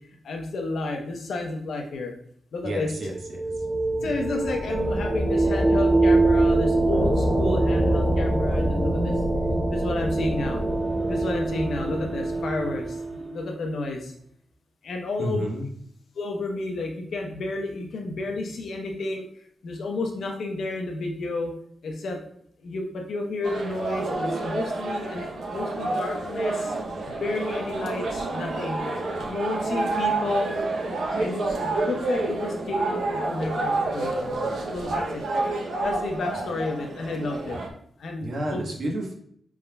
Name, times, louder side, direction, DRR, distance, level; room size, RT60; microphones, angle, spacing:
voice 1, 0.3-2.1 2.5-2.9 4.0-9.1 9.7-10.6 11.1-12.8 13.3-14.0 14.9-15.4 16.2-19.2 19.6-21.5 22.0-22.2 22.6-25.2 25.5-26.5 27.2-28.0 28.3-28.8 29.3-30.5 31.2-31.4 31.8-34.1 34.7-35.2 35.8-37.5 38.0-38.3 38.5-38.6, left 2 dB, 70° left, 2 dB, 0.8 m, -31 dB
voice 2, 2.6-3.4 15.2-15.7 18.1-18.4 38.2-39.1, right 1 dB, 50° right, 0 dB, 1.1 m, -31 dB
sound 1, 2.9-13.5, right 2 dB, 20° right, 0.5 m, -24 dB
sound 2, 23.4-37.7, right 2 dB, 65° right, 0.7 m, -29 dB
5.2 x 3.6 x 2.3 m, 0.65 s
wide cardioid pair, 160°, 0 cm